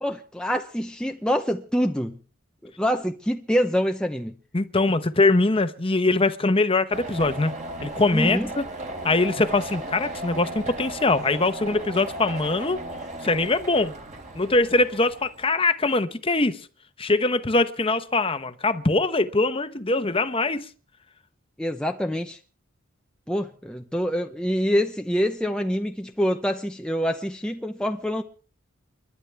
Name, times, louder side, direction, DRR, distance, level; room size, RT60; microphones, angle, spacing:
voice 1, 0.0-2.2 2.6-4.3 8.1-8.5 21.6-22.4 23.3-28.2, equal, 5° left, 0.7 m, -26 dB
voice 2, 4.5-7.5 7.8-8.7 9.0-12.8 13.2-13.9 14.3-16.6 17.0-20.7, left 2 dB, 25° left, 1.0 m, -22 dB
sound 1, 6.9-15.5, right 2 dB, 35° right, 3.5 m, -36 dB
29.5 x 12.0 x 3.4 m
head